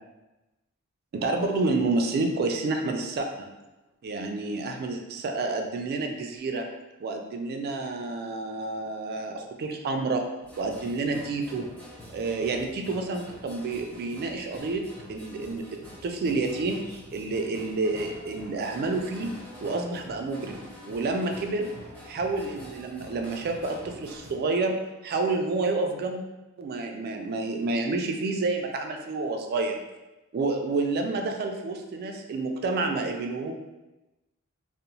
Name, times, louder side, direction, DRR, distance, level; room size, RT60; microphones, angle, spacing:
voice 1, 1.1-3.5 4.0-6.7 7.0-10.2 10.6-11.7 12.1-19.3 19.6-20.6 20.9-21.7 22.1-24.8 25.0-26.2 26.6-29.8 30.3-33.5, right 3 dB, 45° right, 3 dB, 0.3 m, -29 dB
sound 1, 10.4-24.3, left 1 dB, 5° left, 0.6 m, -46 dB
2.8 x 2.0 x 2.6 m, 1.0 s
head